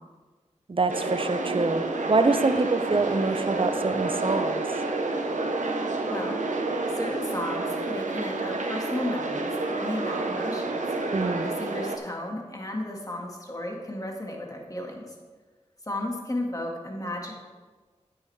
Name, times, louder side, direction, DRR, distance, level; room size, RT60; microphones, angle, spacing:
voice 1, 0.7-4.6 11.1-11.5, right 3 dB, 45° right, 9 dB, 0.6 m, -25 dB
huge crowd, 0.9-12.0, right 2 dB, 85° right, 0.8 m, -29 dB
voice 2, 6.1-6.4 6.9-10.8 11.4-15.1 15.9-17.3, left 1 dB, 30° left, 0 dB, 1.9 m, -34 dB
10.0 x 8.4 x 3.3 m, 1.4 s
cardioid pair, 45°, 13 cm